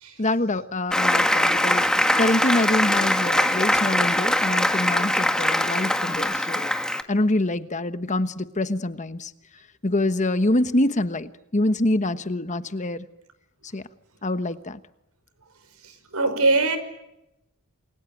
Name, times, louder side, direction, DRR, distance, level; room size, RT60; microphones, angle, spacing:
voice 1, 0.2-1.9 2.2-6.7 7.1-9.3 9.8-13.1 13.7-13.8 14.2-14.8, left 1 dB, 35° left, 1.2 m, -25 dB
Applause, 0.9-7.0, left 1 dB, 5° left, 1.7 m, -22 dB
voice 2, 16.1-16.8, right 3 dB, 80° right, 5.5 m, -20 dB
28.5 x 22.5 x 9.2 m
head